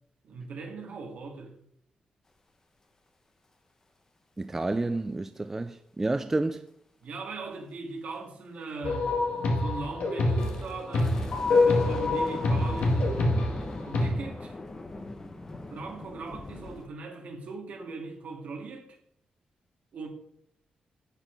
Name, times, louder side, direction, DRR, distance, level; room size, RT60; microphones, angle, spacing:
voice 1, 0.2-1.6 7.0-9.1 9.6-13.4 13.9-14.6 15.7-18.9 19.9-20.1, right 3 dB, 60° right, 2.4 m, -39 dB
voice 2, 4.4-6.6, right 2 dB, 15° right, 0.3 m, -30 dB
sound 1, 8.8-14.1, left 2 dB, 65° left, 2.0 m, -25 dB
sound 2, 10.4-16.9, left 2 dB, 20° left, 0.9 m, -41 dB
8.8 x 8.1 x 4.1 m
wide cardioid pair, 175°, 3 cm